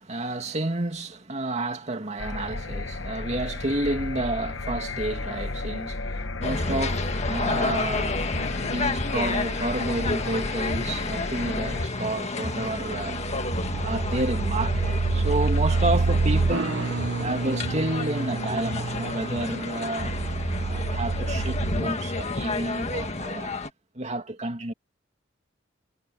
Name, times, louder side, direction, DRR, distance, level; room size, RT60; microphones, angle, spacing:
voice 1, 0.0-13.2 13.7-16.9 17.2-20.2 20.5-23.5 24.0-24.7, right 2 dB, 35° right, 2.5 m, -30 dB
sound 1, 2.2-11.9, left 2 dB, 85° left, 1.2 m, -33 dB
sound 2, 6.4-23.7, left 3 dB, 35° left, 1.7 m, -31 dB
sound 3, 12.4-21.8, right 3 dB, 65° right, 0.7 m, -27 dB
head